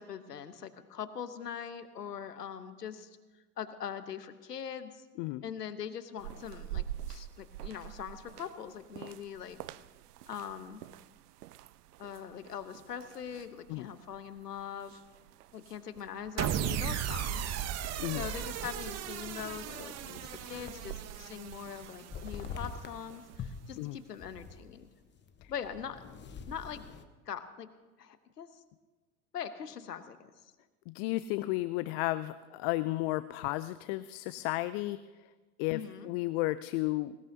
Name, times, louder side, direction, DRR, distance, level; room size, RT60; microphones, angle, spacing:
voice 1, 0.0-3.1 3.6-5.0 5.4-9.6 10.3-10.8 12.0-15.0 15.5-17.4 18.2-24.9 25.5-26.0 26.5-26.8 27.3-27.7 28.0-28.5 29.3-30.5 35.7-36.1, left 8 dB, 85° left, 12 dB, 1.1 m, -42 dB
sound 1, 6.2-23.4, right 12 dB, 75° right, 0.6 m, -48 dB
sound 2, 16.4-22.7, right 10 dB, 35° right, 0.9 m, -36 dB
sound 3, 18.0-21.1 21.4-23.1 23.4-27.0, left 6 dB, 25° left, 1.0 m, -46 dB
voice 2, 30.9-35.3 35.6-37.2, left 18 dB, 45° left, 15 dB, 0.5 m, -33 dB
20.0 x 19.5 x 2.8 m, 1.2 s
hypercardioid pair, 90°, 46 cm